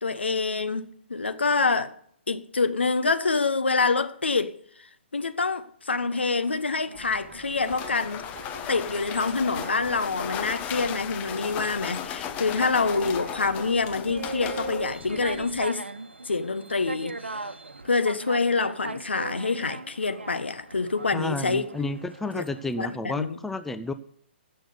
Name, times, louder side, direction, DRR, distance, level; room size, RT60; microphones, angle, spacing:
voice 1, 0.0-1.9 2.3-4.5 5.1-8.3 8.7-15.8 16.3-17.5 17.8-21.7 22.3-22.4 22.8-23.4, left 4 dB, 75° left, 1.2 m, -26 dB
sound 1, 5.9-22.7, right 3 dB, 80° right, 1.1 m, -40 dB
sound 2, 6.9-15.7, left 9 dB, 25° left, 1.0 m, -36 dB
voice 2, 21.1-23.9, left 2 dB, 5° left, 0.5 m, -31 dB
16.0 x 6.5 x 6.7 m
figure-of-eight pair, 125°, 6 cm